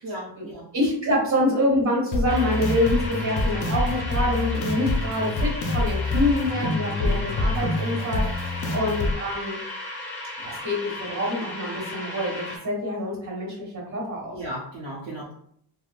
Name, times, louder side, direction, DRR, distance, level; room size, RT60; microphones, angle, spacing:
voice 1, 0.0-0.7 7.0-7.2 8.7-8.9 14.3-15.3, right 1 dB, 70° right, -4 dB, 0.8 m, -36 dB
voice 2, 0.7-9.6 10.4-14.3, left 1 dB, 40° right, -3 dB, 1.5 m, -26 dB
sound 1, 2.1-9.1, left 2 dB, 45° left, 0.5 m, -26 dB
sound 2, 2.3-12.6, left 1 dB, 5° left, 0.9 m, -35 dB
3.3 x 2.0 x 2.4 m, 0.67 s
wide cardioid pair, 125°, 45 cm